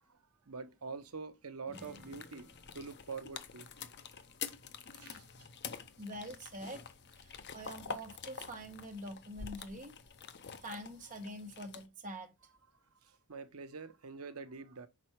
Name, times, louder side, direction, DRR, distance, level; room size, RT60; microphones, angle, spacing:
voice 1, 0.5-2.5 2.7-3.8 4.9-5.5 12.5-12.6 13.0-14.9, right 4 dB, 75° right, 0.8 m, -46 dB
sound 1, 1.6-5.3, equal, 5° right, 1.9 m, -61 dB
sound 2, 1.7-11.9, left 6 dB, 50° left, 0.7 m, -47 dB
voice 2, 6.0-6.8 7.2-10.0 10.6-12.3, equal, 35° right, 1.3 m, -45 dB
6.1 x 4.3 x 4.5 m
head